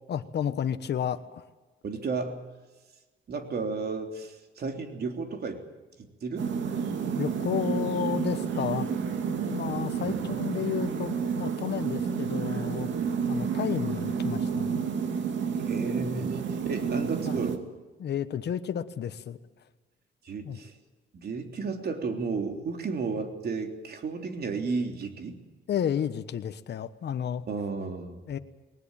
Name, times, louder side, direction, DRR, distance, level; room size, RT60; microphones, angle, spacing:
voice 1, 0.1-1.4 7.1-8.9 9.4-12.9 13.3-14.8 16.1-16.3 17.3-17.4 18.0-19.4 20.4-20.6 25.7-27.4 28.3-28.4, left 9 dB, 60° left, 9 dB, 1.2 m, -32 dB
voice 2, 1.8-2.4 3.3-5.6 6.0-6.5 10.0-10.2 15.7-17.6 20.2-20.7 21.2-25.4 27.5-28.2, right 4 dB, 50° right, 4 dB, 3.4 m, -33 dB
sound 1, 6.4-17.6, right 6 dB, 70° right, 2.6 m, -30 dB
20.5 x 19.5 x 9.0 m, 1.2 s
cardioid pair, 90°, 20 cm